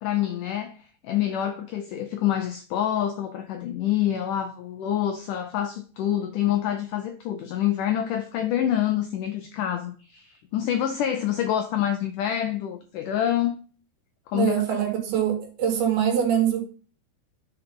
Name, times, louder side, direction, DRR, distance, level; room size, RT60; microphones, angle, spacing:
voice 1, 0.0-13.6 14.3-14.6, left 11 dB, 85° left, 1.8 m, -27 dB
voice 2, 14.3-16.6, right 9 dB, 80° right, 3.7 m, -23 dB
8.0 x 4.4 x 5.2 m
omnidirectional pair, 4.5 m